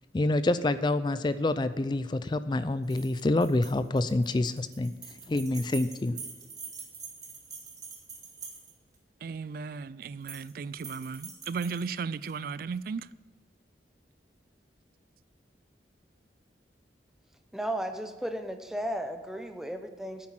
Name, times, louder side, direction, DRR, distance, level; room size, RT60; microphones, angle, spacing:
voice 1, 0.1-4.9 5.3-6.2, left 2 dB, 25° left, 0.4 m, -27 dB
sound 1, 2.8-9.0 10.0-10.5 10.8-12.3, right 5 dB, 20° right, 1.9 m, -45 dB
voice 2, 9.2-13.1, right 5 dB, 55° right, 0.3 m, -35 dB
voice 3, 17.5-20.3, right 1 dB, 5° right, 0.8 m, -34 dB
9.9 x 8.6 x 7.5 m
head